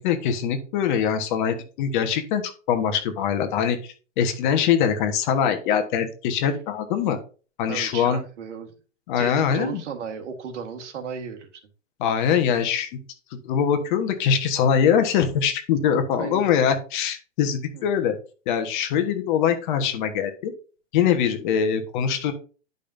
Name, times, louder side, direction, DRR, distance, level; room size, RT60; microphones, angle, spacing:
voice 1, 0.0-7.2 7.6-8.2 9.1-9.8 12.0-12.9 13.4-18.2 18.5-20.5 20.9-22.3, left 8 dB, 40° left, 7 dB, 1.4 m, -23 dB
voice 2, 7.7-8.7 9.2-11.6 15.9-16.4 17.7-17.8, right 6 dB, 75° right, 5 dB, 1.7 m, -35 dB
11.0 x 5.3 x 2.7 m, 0.36 s
hypercardioid pair, 150°, 36 cm